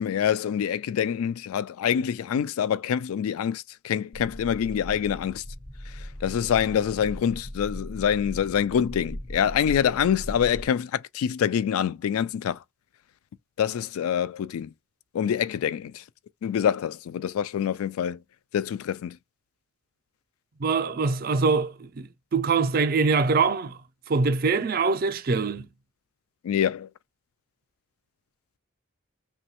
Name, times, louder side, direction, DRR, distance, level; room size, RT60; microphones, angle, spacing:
voice 1, 0.0-5.4 6.2-12.6 13.6-14.7 15.1-15.9 16.4-18.2 18.5-19.1 26.4-26.9, left 8 dB, 85° left, 0.3 m, -26 dB
sound 1, 4.1-10.7, equal, 15° left, 0.4 m, -39 dB
voice 2, 20.6-23.8 24.1-25.7, right 4 dB, 45° right, 0.4 m, -24 dB
3.0 x 2.2 x 2.8 m
head